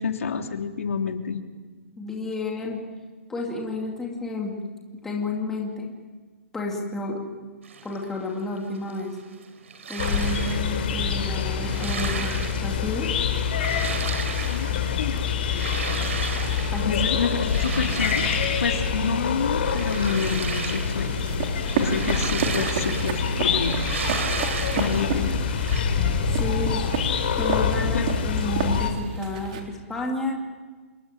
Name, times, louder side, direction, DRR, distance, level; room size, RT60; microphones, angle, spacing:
voice 1, 0.0-1.4 14.5-14.7 15.0-15.1 16.9-21.1 21.7-23.8 24.7-25.4 26.7-26.8 27.9-28.1, left 5 dB, 90° left, 4 dB, 3.5 m, -28 dB
voice 2, 2.0-2.8 3.3-4.6 5.0-5.9 6.5-7.2 7.8-9.2 9.9-12.3 12.6-13.1 16.7-17.0 26.3-26.8 27.4-30.4, left 2 dB, 5° left, -1 dB, 2.4 m, -31 dB
sound 1, 7.6-25.8, right 6 dB, 65° right, 4.5 m, -35 dB
sound 2, 10.0-28.9, left 6 dB, 45° left, 4.7 m, -26 dB
sound 3, 19.8-29.6, right 6 dB, 35° right, 3.5 m, -32 dB
27.5 x 22.0 x 9.2 m, 1.3 s
hypercardioid pair, 180°, 7 cm